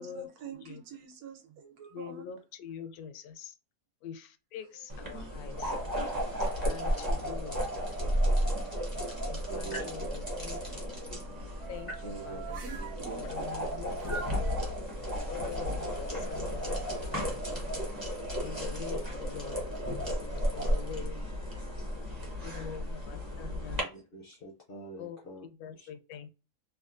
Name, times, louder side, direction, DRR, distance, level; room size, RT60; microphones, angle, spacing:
voice 1, 0.0-2.3 5.1-5.4 12.6-13.4, right 6 dB, 80° right, 1.1 m, -46 dB
voice 2, 1.9-3.6 4.0-5.7 6.6-7.7 9.3-10.8 11.7-11.9 12.2-12.6 13.2-14.6 15.3-17.8 18.4-19.6 20.5-21.2 22.4-23.9 25.0-26.3, left 7 dB, 75° left, 1.0 m, -44 dB
sound 1, 4.6-5.5 6.1-10.0 10.8-13.0 14.0-14.6, right 6 dB, 55° right, 0.7 m, -47 dB
sound 2, 4.9-23.8, equal, 20° right, 0.7 m, -33 dB
voice 3, 9.5-10.0 12.0-13.5 22.0-22.1 23.9-25.4 25.8-25.9, right 2 dB, 55° left, 0.6 m, -44 dB
3.5 x 2.3 x 2.4 m
omnidirectional pair, 1.6 m